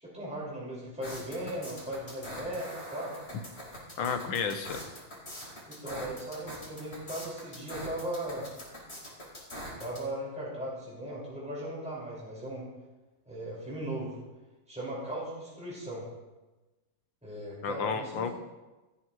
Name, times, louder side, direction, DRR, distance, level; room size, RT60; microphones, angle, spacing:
voice 1, 0.0-3.1 5.7-8.5 9.8-12.7 13.3-14.2 14.7-16.1 17.2-18.3, right 1 dB, 5° right, -7 dB, 5.5 m, -37 dB
sound 1, 1.0-10.0, equal, 30° left, 4.6 m, -43 dB
voice 2, 4.0-4.8 17.6-18.3, left 6 dB, 75° left, 7 dB, 1.8 m, -31 dB
27.5 x 9.4 x 3.2 m, 1.1 s
omnidirectional pair, 2.1 m